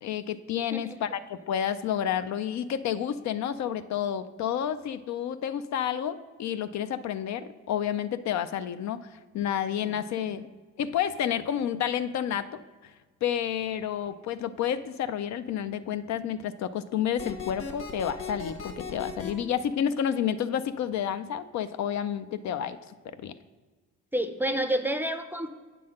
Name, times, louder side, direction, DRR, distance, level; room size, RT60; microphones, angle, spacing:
voice 1, 0.0-9.1 9.3-10.5 10.8-12.5 12.8-12.9 13.2-23.3, left 9 dB, 65° left, 11 dB, 0.5 m, -30 dB
sound 1, 17.2-19.3, left 5 dB, 45° left, 1.3 m, -37 dB
voice 2, 24.1-25.5, right 1 dB, 5° right, 8 dB, 0.5 m, -29 dB
8.6 x 3.8 x 6.2 m, 1.4 s
cardioid pair, 90°, 30 cm